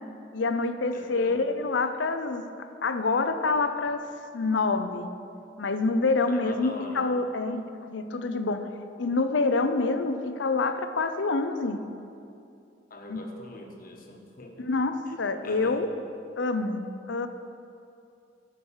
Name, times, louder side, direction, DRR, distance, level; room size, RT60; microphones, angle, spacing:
voice 1, 0.3-4.0 4.3-5.1 5.6-8.7 9.0-11.8 13.1-13.2 14.6-15.9 16.4-17.3, left 3 dB, 75° left, 9 dB, 0.6 m, -27 dB
voice 2, 0.9-1.4 6.3-7.1 12.9-14.7 15.1-15.2 15.4-15.8, left 1 dB, 50° left, 2 dB, 1.3 m, -42 dB
11.0 x 6.0 x 7.3 m, 2.5 s
head